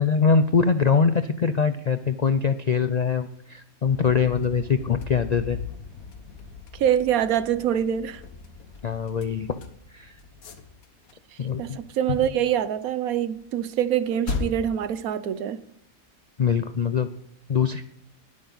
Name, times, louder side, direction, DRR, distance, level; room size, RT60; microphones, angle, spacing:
voice 1, 0.0-5.6 8.8-9.6 9.9-10.2 11.4-11.8 16.4-17.1 17.5-17.8, left 5 dB, 65° left, 0.4 m, -23 dB
sound 1, 3.8-11.1 11.4-12.5 13.3-13.4 14.3-14.8, left 5 dB, 85° left, 1.8 m, -37 dB
voice 2, 6.7-8.2 11.6-15.6, right 10 dB, 85° right, 1.2 m, -25 dB
20.0 x 8.6 x 4.0 m
omnidirectional pair, 1.5 m